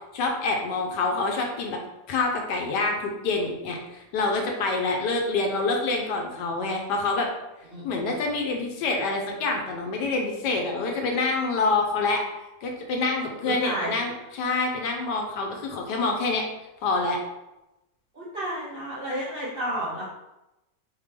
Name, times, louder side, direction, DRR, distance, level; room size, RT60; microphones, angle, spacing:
voice 1, 0.1-1.8 2.1-7.3 7.8-12.2 12.6-16.4 16.8-17.2, left 3 dB, 70° left, 2 dB, 1.3 m, -26 dB
voice 2, 7.7-8.0 13.5-13.9 18.1-20.0, right 1 dB, 55° right, -7 dB, 0.6 m, -31 dB
4.3 x 3.6 x 3.2 m, 0.97 s
omnidirectional pair, 2.0 m